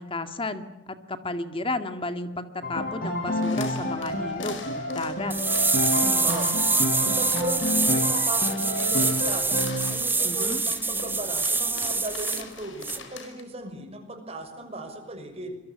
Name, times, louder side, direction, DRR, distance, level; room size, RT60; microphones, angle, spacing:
voice 1, 0.0-4.6 4.9-5.4 10.2-10.6, left 2 dB, 30° left, 9 dB, 2.2 m, -33 dB
Piano, 2.6-9.9, left 1 dB, 50° left, 6.9 m, -29 dB
sound 1, 3.4-13.4, left 5 dB, 80° left, 5.3 m, -43 dB
sound 2, 5.3-12.4 12.8-13.0, right 4 dB, 10° right, 1.5 m, -25 dB
voice 2, 6.0-6.5 7.0-15.6, right 1 dB, 35° right, 5 dB, 6.2 m, -36 dB
26.5 x 22.5 x 8.6 m, 0.93 s
head